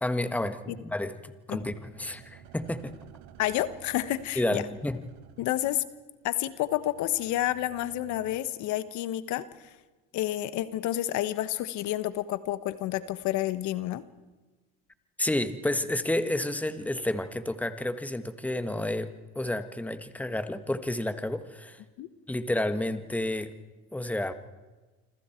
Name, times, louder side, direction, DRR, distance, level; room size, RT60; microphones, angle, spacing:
voice 1, 0.0-2.9 4.3-5.0 15.2-21.8 22.3-23.5 23.9-24.3, left 1 dB, 5° left, 10 dB, 1.6 m, -30 dB
sound 1, 1.7-8.4, right 10 dB, 85° right, 1.8 m, -53 dB
voice 2, 3.4-4.6 5.4-5.8 6.2-9.7 10.1-14.0 22.0-22.1, left 14 dB, 70° left, 14 dB, 1.3 m, -30 dB
27.0 x 26.0 x 4.5 m, 1.2 s
supercardioid pair, 105°, 31 cm